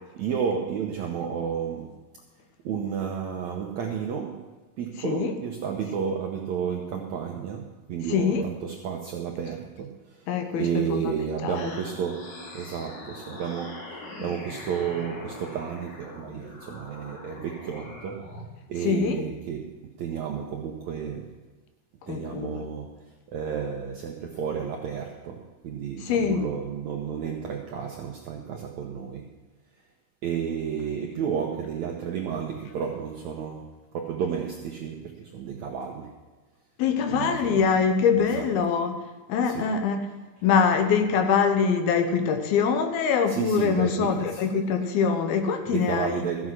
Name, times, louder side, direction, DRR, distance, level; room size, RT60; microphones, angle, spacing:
voice 1, 0.1-1.9 2.6-4.5 4.8-10.0 10.6-18.2 18.7-19.7 20.0-21.3 22.1-23.0 23.3-29.2 30.2-33.7 33.9-36.1 37.1-37.6 38.2-38.5 39.4-39.7 43.3-44.4 45.7-46.5, right 7 dB, 75° right, 1 dB, 1.7 m, -32 dB
voice 2, 5.0-5.3 8.1-8.4 10.3-11.1 11.4-11.6 18.8-19.2 22.1-22.7 26.0-26.5 36.8-40.0 40.4-46.2, left 6 dB, 75° left, 7 dB, 2.8 m, -24 dB
sound 1, 11.5-18.4, left 2 dB, 55° left, 1.2 m, -42 dB
14.5 x 8.0 x 6.2 m, 1.3 s
omnidirectional pair, 4.5 m